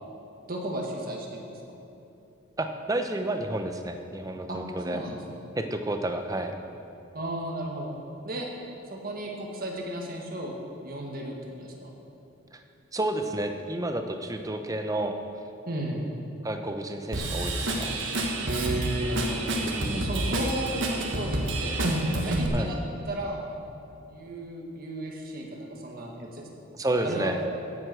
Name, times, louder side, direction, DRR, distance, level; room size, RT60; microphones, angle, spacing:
voice 1, 0.5-1.5 4.5-4.6 4.9-5.4 7.1-7.9 8.2-8.5 8.9-10.6 10.8-11.9 15.7-16.0 18.4-19.5 19.9-21.8 22.1-22.8 23.1-23.4 24.1-26.5 27.0-27.3, right 1 dB, 45° right, -1 dB, 1.7 m, -34 dB
voice 2, 2.6-5.0 5.6-6.6 12.5-12.6 12.9-15.1 16.4-17.9 19.6-20.1 22.5-22.7 26.8-27.4, right 1 dB, 15° right, 6 dB, 0.7 m, -30 dB
Drum kit / Drum, 17.1-22.5, right 1 dB, 60° right, 1.5 m, -28 dB
14.5 x 8.0 x 6.2 m, 2.8 s
head